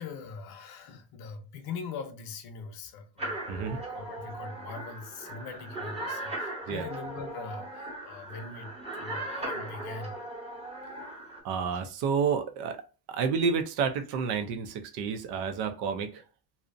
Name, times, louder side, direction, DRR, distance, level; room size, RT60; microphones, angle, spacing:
voice 1, 0.0-10.2, left 5 dB, 60° left, 0.6 m, -42 dB
sound 1, 3.2-11.4, right 2 dB, 15° right, 0.8 m, -38 dB
voice 2, 3.5-3.8 6.7-6.9 11.4-12.8 13.1-16.2, right 6 dB, 85° right, 0.6 m, -30 dB
2.6 x 2.0 x 2.5 m
cardioid pair, 125°, 40 cm